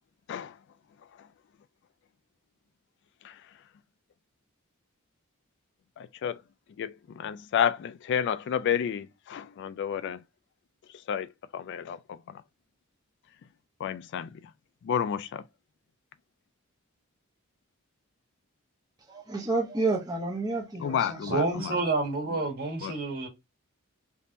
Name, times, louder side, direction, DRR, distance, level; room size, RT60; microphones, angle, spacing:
voice 1, 6.0-6.4 6.8-10.2 11.1-12.0 13.8-14.4 14.8-15.4 20.8-21.8 22.8-22.9, left 8 dB, 55° left, 0.3 m, -30 dB
voice 2, 19.1-21.8, right 3 dB, 20° right, 0.7 m, -31 dB
voice 3, 21.3-23.3, right 3 dB, 45° right, 1.5 m, -29 dB
3.5 x 2.8 x 2.5 m
head